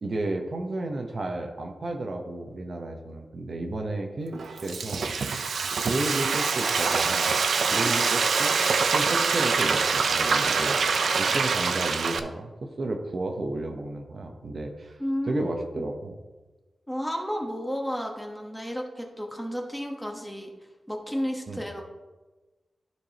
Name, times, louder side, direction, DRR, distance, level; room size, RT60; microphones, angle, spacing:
voice 1, 0.0-5.1 5.8-8.6 8.8-10.8 11.2-16.1 21.5-21.6, right 2 dB, 55° right, 3 dB, 0.8 m, -32 dB
Frying (food), 4.3-12.2, right 5 dB, 80° right, 0.5 m, -25 dB
voice 2, 15.0-15.8 16.9-20.5 20.9-21.8, equal, 5° left, 1 dB, 1.1 m, -32 dB
13.5 x 4.6 x 2.8 m, 1.2 s
wide cardioid pair, 125°, 0 cm